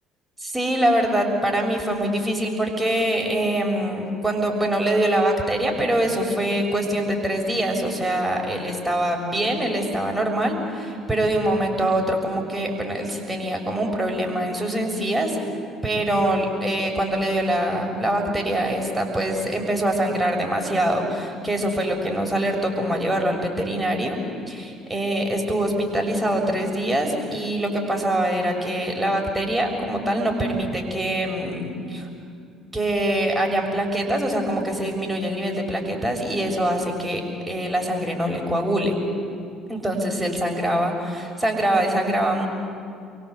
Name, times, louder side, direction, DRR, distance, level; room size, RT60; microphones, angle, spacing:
voice 1, 0.4-15.4 15.8-24.2 24.5-32.1 32.7-37.2 37.5-39.0 39.7-42.5, right 1 dB, 10° right, 1 dB, 6.8 m, -24 dB
30.0 x 23.5 x 8.4 m, 2.3 s
figure-of-eight pair, 55°, 0 cm